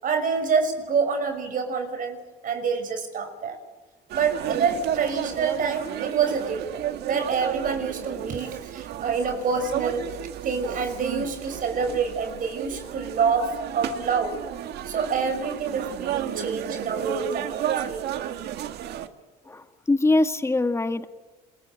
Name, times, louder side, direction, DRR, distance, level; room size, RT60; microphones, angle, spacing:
voice 1, 0.0-2.2 2.4-3.6 4.1-10.1 10.4-14.4 14.8-18.1, right 5 dB, 55° right, 7 dB, 6.0 m, -27 dB
sound 1, 4.1-19.1, right 11 dB, 75° right, 2.1 m, -33 dB
voice 2, 19.5-21.1, left 2 dB, 15° left, 8 dB, 2.0 m, -23 dB
27.5 x 22.5 x 9.0 m, 1.2 s
cardioid pair, 110°, 17 cm